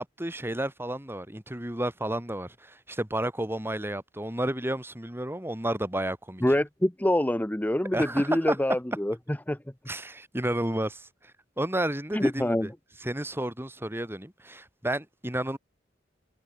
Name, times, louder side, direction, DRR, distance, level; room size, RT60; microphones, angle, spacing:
voice 1, 0.0-6.4 7.9-8.6 9.9-11.1 11.6-12.7 13.0-15.6, right 1 dB, 15° right, 3.3 m, -31 dB
voice 2, 6.4-9.6 12.1-12.7, left 1 dB, 10° left, 0.8 m, -26 dB
head